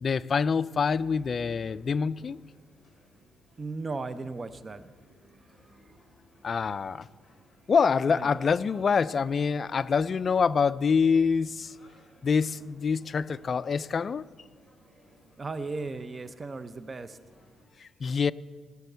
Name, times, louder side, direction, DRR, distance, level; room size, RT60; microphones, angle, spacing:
voice 1, 0.0-2.4 6.4-7.1 7.7-11.7 12.2-14.3 17.8-18.3, left 5 dB, 45° left, 0.3 m, -26 dB
sound 1, 1.0-17.7, equal, 5° left, 4.7 m, -58 dB
voice 2, 3.6-5.0 5.7-5.8 8.1-8.4 15.4-17.2, right 3 dB, 30° right, 0.6 m, -36 dB
17.5 x 6.9 x 6.8 m
cardioid pair, 90°, 0 cm